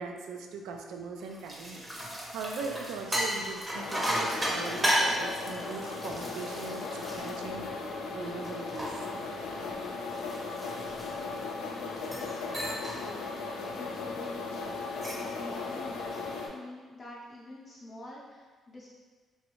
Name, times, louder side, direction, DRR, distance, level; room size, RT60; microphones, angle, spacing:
voice 1, 0.0-1.8 2.3-7.8 8.1-9.0, right 4 dB, 90° right, 3 dB, 0.3 m, -40 dB
sound 1, 1.2-8.0 8.4-11.5 12.0-12.3 12.5-13.0 13.4-13.6 14.8-15.3, equal, 15° right, 0.6 m, -34 dB
sound 2, 3.7-16.5, left 4 dB, 90° left, 0.4 m, -37 dB
voice 2, 11.8-12.4 12.6-14.8 15.2-18.9, left 1 dB, 35° left, -7 dB, 0.6 m, -46 dB
3.1 x 2.6 x 2.9 m, 1.4 s
cardioid pair, 90°, 0 cm